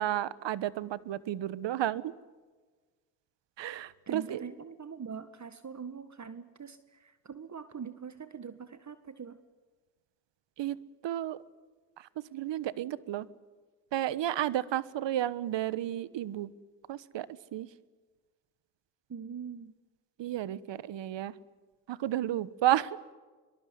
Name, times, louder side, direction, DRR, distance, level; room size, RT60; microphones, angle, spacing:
voice 1, 0.0-2.1 3.6-4.4 10.6-10.8 11.0-11.4 12.0-13.3 13.9-16.5 16.9-17.3 17.5-17.7 20.2-21.3 21.9-23.0, right 12 dB, 65° right, 19 dB, 1.3 m, -32 dB
voice 2, 4.1-9.4 19.1-19.8, right 6 dB, 35° right, 12 dB, 1.7 m, -43 dB
23.0 x 22.5 x 9.6 m, 1.3 s
hypercardioid pair, 55°, 48 cm